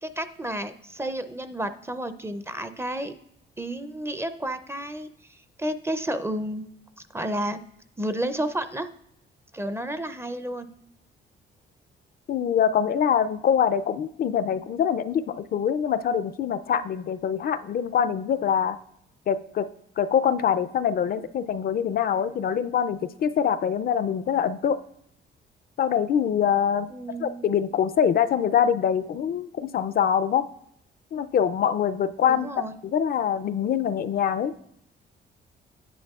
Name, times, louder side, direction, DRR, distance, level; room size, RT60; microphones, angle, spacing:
voice 1, 0.0-3.1 3.6-6.7 7.1-7.6 8.0-8.9 9.5-10.7 26.9-27.5 32.3-32.7, right 1 dB, 15° right, 11 dB, 0.4 m, -31 dB
voice 2, 12.3-18.8 19.3-19.7 20.0-24.8 25.8-26.9 27.2-30.5 31.1-32.5 32.9-34.6, left 8 dB, 50° left, 13 dB, 0.4 m, -24 dB
9.6 x 9.3 x 2.3 m, 0.74 s
cardioid pair, 90°, 20 cm